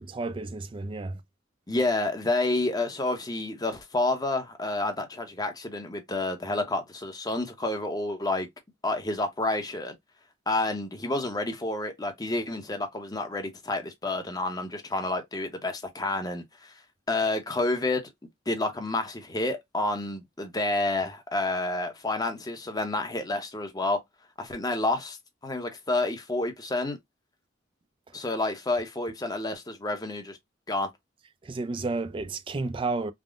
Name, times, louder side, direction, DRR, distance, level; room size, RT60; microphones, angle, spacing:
voice 1, 0.0-1.2 31.4-33.1, right 3 dB, 25° right, 0.3 m, -31 dB
voice 2, 1.7-8.5 8.8-9.9 10.5-16.7 17.1-18.0 18.5-24.0 24.4-25.2 25.4-27.0 28.1-30.4 30.7-30.9, left 2 dB, 20° left, 0.7 m, -29 dB
3.5 x 2.1 x 2.3 m
head